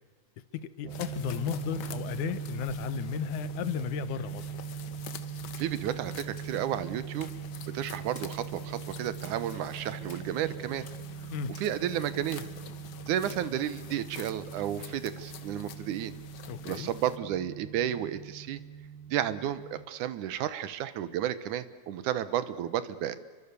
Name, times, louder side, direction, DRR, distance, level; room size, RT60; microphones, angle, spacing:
voice 1, 0.5-4.5 11.3-11.6 16.5-16.9, left 11 dB, 80° left, 13 dB, 2.6 m, -34 dB
sound 1, 0.8-19.8, right 8 dB, 45° right, 2.0 m, -41 dB
sound 2, 0.9-17.2, left 9 dB, 60° left, 1.5 m, -48 dB
Splash splatter, 5.5-5.9 6.4-6.7 7.2-7.5 8.2-8.5 9.2-9.6 10.1-10.4 10.9-11.1 11.5-11.9 12.3-12.7 13.2-13.5, left 4 dB, 30° left, 1.8 m, -53 dB
voice 2, 5.6-7.3 7.7-10.9 11.6-12.5 13.1-16.1 16.7-18.6 19.1-23.2, right 11 dB, 80° right, 14 dB, 2.5 m, -32 dB
28.5 x 23.5 x 6.9 m, 1.5 s
omnidirectional pair, 3.5 m